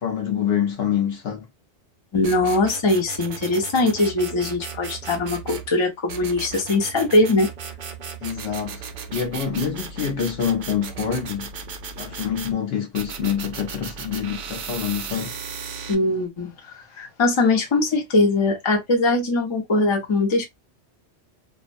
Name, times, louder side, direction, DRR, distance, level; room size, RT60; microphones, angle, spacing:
voice 1, 0.0-1.5 8.2-8.8 9.1-11.5 12.0-15.3, left 8 dB, 65° left, 0.9 m, -26 dB
voice 2, 2.1-7.5 15.9-16.5 17.0-20.4, left 2 dB, 30° left, 0.7 m, -21 dB
sound 1, 2.2-5.7 6.1-12.5 12.9-15.9, right 6 dB, 60° right, 0.6 m, -36 dB
2.5 x 2.1 x 2.4 m
omnidirectional pair, 1.2 m